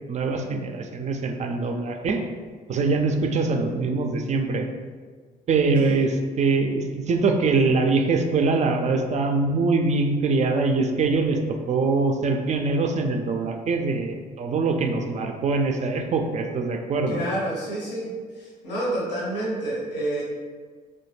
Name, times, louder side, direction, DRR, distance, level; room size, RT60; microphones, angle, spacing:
voice 1, 0.1-2.2 2.7-4.7 5.5-17.2, right 3 dB, 35° right, 4 dB, 0.4 m, -23 dB
voice 2, 17.1-18.1 18.4-20.2, right 1 dB, 85° left, -5 dB, 0.7 m, -29 dB
3.3 x 2.1 x 3.1 m, 1.5 s
figure-of-eight pair, 45°, 21 cm